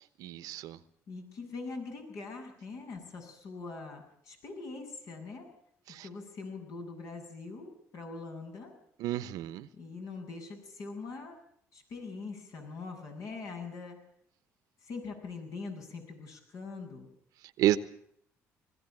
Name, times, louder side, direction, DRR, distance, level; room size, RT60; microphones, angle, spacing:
voice 1, 0.2-0.8 5.9-6.1 9.0-9.7 17.6-17.8, right 13 dB, 80° right, 13 dB, 1.1 m, -30 dB
voice 2, 1.1-5.5 6.0-8.7 9.7-11.4 11.7-14.0 14.8-17.1, left 4 dB, 65° left, 3 dB, 8.0 m, -42 dB
21.0 x 16.0 x 9.2 m, 0.68 s
supercardioid pair, 80°, 6 cm